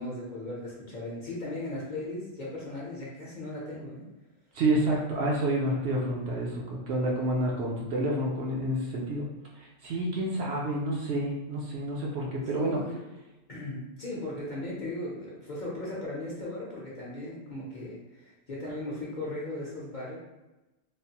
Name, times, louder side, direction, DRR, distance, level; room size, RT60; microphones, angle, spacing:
voice 1, 0.0-4.0 12.4-13.0 13.5-20.2, left 1 dB, 45° left, -6 dB, 0.7 m, -37 dB
voice 2, 4.5-9.2 9.6-12.8, right 1 dB, 65° right, -3 dB, 0.8 m, -29 dB
3.2 x 2.1 x 2.7 m, 1.0 s
omnidirectional pair, 1.3 m